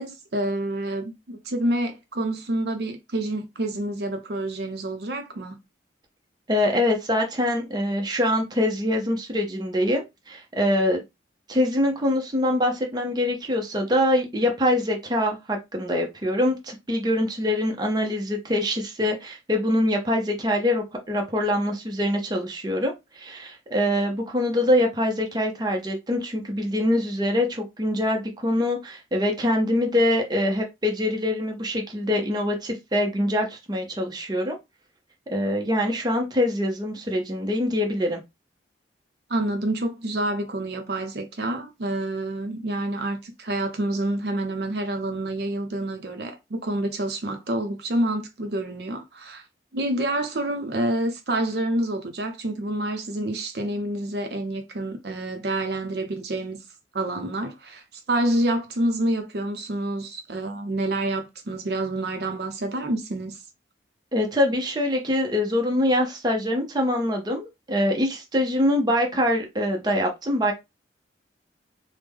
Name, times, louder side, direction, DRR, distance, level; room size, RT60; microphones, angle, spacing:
voice 1, 0.0-5.6 39.3-49.4 49.7-56.6 56.9-63.4, right 1 dB, 65° right, 0.6 m, -28 dB
voice 2, 6.5-11.0 11.5-34.6 35.3-38.2 64.1-70.5, left 1 dB, 25° right, 0.6 m, -24 dB
3.3 x 2.1 x 3.4 m
head